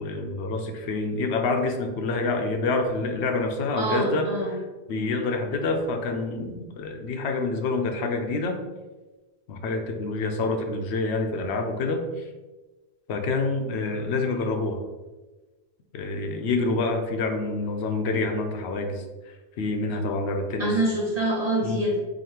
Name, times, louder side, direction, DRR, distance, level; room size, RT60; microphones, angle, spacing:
voice 1, 0.0-4.6 4.9-8.6 9.5-12.3 13.1-14.8 15.9-19.0 19.6-20.8 21.6-21.8, left 3 dB, 80° left, 4 dB, 0.9 m, -27 dB
voice 2, 3.8-4.5 20.6-22.0, right 1 dB, 40° right, -5 dB, 1.3 m, -25 dB
5.0 x 2.6 x 2.9 m, 1.2 s
omnidirectional pair, 1.1 m